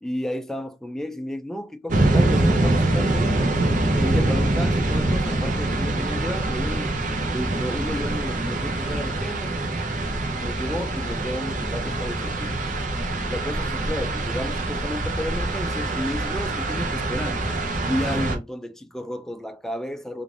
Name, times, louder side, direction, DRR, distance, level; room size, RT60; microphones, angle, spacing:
voice 1, 0.0-3.6 3.9-7.0 7.3-9.6 10.4-12.6 13.3-17.4 17.9-20.2, left 1 dB, 5° left, 0.3 m, -32 dB
sound 1, 1.9-18.4, right 2 dB, 45° right, 0.7 m, -24 dB
3.7 x 2.5 x 3.2 m
head